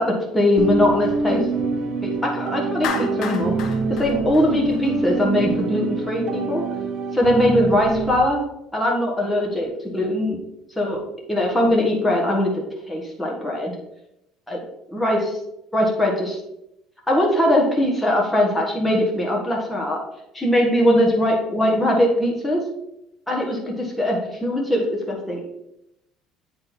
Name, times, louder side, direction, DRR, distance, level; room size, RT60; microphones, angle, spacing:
voice 1, 0.0-1.4 2.0-3.5 3.9-6.6 7.1-8.4 8.7-10.4 10.8-11.0 11.3-12.5 12.9-13.7 14.5-14.6 14.9-15.4 15.7-16.4 17.1-20.0 20.3-22.6 23.3-25.4, left 1 dB, 5° left, -2 dB, 1.7 m, -21 dB
sound 1, 0.6-8.2, right 4 dB, 55° right, 1.1 m, -25 dB
Clapping, 2.8-5.1, left 7 dB, 55° left, 0.9 m, -31 dB
8.9 x 4.0 x 4.0 m, 0.84 s
cardioid pair, 140°, 0 cm